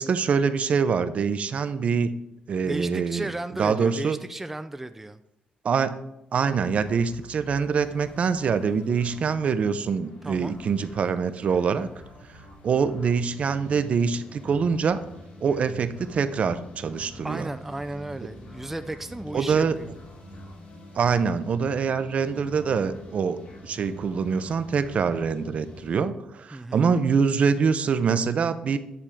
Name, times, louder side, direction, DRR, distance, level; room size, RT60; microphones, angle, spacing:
voice 1, 0.0-2.1 2.5-3.3 3.6-4.2 5.6-6.0 6.3-11.9 12.6-15.0 15.4-17.5 19.3-19.8 20.9-23.4 23.6-28.8, right 6 dB, 50° right, 12 dB, 0.6 m, -24 dB
voice 2, 2.6-5.2 10.2-10.6 17.2-20.0 26.5-26.9, right 2 dB, 10° right, 10 dB, 0.4 m, -34 dB
sound 1, 6.6-26.0, left 1 dB, 70° left, 2.5 m, -46 dB
10.0 x 3.6 x 6.7 m, 0.84 s
cardioid pair, 115°, 3 cm